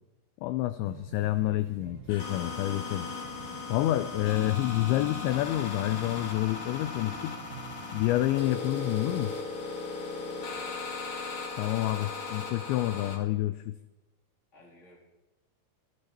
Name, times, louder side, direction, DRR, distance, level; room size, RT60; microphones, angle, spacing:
voice 1, 0.4-3.1 3.7-7.3 7.9-9.3 11.6-13.7, left 15 dB, 85° left, 12 dB, 2.6 m, -28 dB
sound 1, 0.8-9.0, right 9 dB, 75° right, 2.0 m, -49 dB
sound 2, 2.1-13.2, left 4 dB, 55° left, 1.6 m, -37 dB
voice 2, 10.3-10.8 14.5-15.0, left 1 dB, 15° left, -2 dB, 3.2 m, -54 dB
26.5 x 9.8 x 4.3 m, 1.0 s
omnidirectional pair, 5.7 m